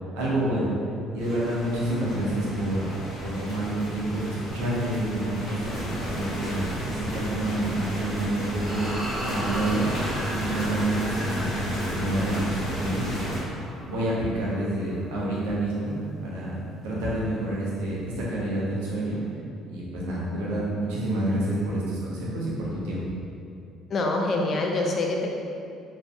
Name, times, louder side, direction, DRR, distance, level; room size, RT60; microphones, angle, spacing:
voice 1, 0.1-0.7 1.1-2.9 3.2-8.9 9.2-9.9 10.3-13.4 13.9-19.2 19.7-23.0, right 1 dB, 90° right, -6 dB, 0.6 m, -28 dB
sound 1, 1.2-13.4, equal, 70° left, 1.0 m, -33 dB
sound 2, 8.6-15.1, equal, 15° right, 0.7 m, -38 dB
voice 2, 23.9-25.3, left 2 dB, 45° left, 0 dB, 0.4 m, -25 dB
2.6 x 2.5 x 2.2 m, 2.5 s
supercardioid pair, 80°, 0 cm